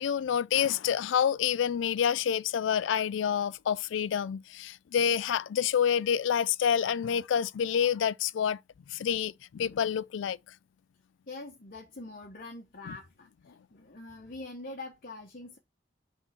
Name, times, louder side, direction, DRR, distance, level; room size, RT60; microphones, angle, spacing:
voice 1, 0.0-8.6 8.9-10.4 12.9-13.0, left 8 dB, 70° left, 0.3 m, -28 dB
voice 2, 11.3-15.6, left 2 dB, 45° left, 1.0 m, -44 dB
5.4 x 3.8 x 5.8 m
head